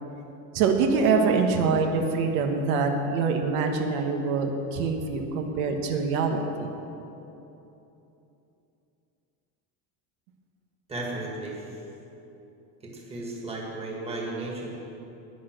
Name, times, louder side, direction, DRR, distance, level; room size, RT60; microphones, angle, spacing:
voice 1, 0.5-6.7, right 4 dB, 75° right, 4 dB, 1.4 m, -25 dB
voice 2, 10.9-11.7 12.8-14.7, right 2 dB, 15° right, -2 dB, 1.9 m, -34 dB
11.0 x 9.8 x 6.6 m, 2.9 s
cardioid pair, 170°, 41 cm